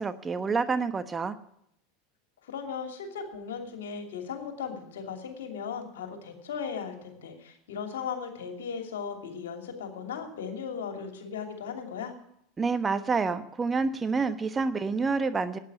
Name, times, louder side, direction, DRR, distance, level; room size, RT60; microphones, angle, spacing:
voice 1, 0.0-1.4 12.6-15.6, right 4 dB, 20° right, 11 dB, 1.1 m, -28 dB
voice 2, 2.4-12.1, left 6 dB, 75° left, 5 dB, 2.7 m, -37 dB
12.0 x 9.6 x 9.1 m, 0.74 s
hypercardioid pair, 85°, 0 cm